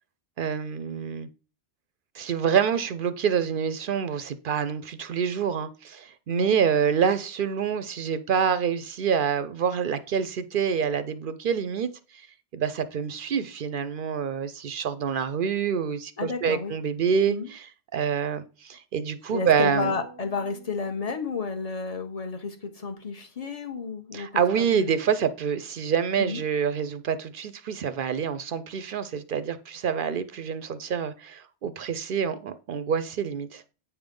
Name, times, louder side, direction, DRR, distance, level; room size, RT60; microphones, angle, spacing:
voice 1, 0.4-1.3 2.1-12.3 12.5-19.9 24.1-33.6, right 7 dB, 60° right, 0.6 m, -27 dB
voice 2, 16.2-16.7 17.3-17.5 19.3-24.9 26.2-26.4, left 4 dB, 35° left, 1.1 m, -32 dB
sound 1, 19.8-21.8, right 3 dB, 20° right, 0.5 m, -46 dB
8.4 x 3.5 x 5.2 m
omnidirectional pair, 1.1 m